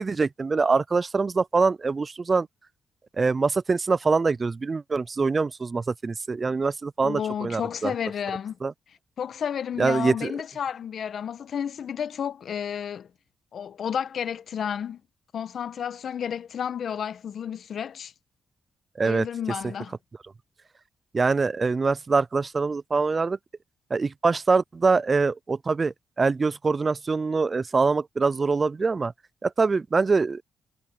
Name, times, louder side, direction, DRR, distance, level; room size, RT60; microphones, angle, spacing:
voice 1, 0.0-2.5 3.2-7.9 8.6-8.7 9.8-10.3 19.0-19.3 21.1-23.4 23.9-29.1 29.4-30.4, right 4 dB, 40° right, 0.4 m, -24 dB
voice 2, 7.0-8.6 9.2-13.1 13.5-15.0 15.3-18.1 19.0-19.9, left 8 dB, 65° left, 1.4 m, -31 dB
supercardioid pair, 60°, 0 cm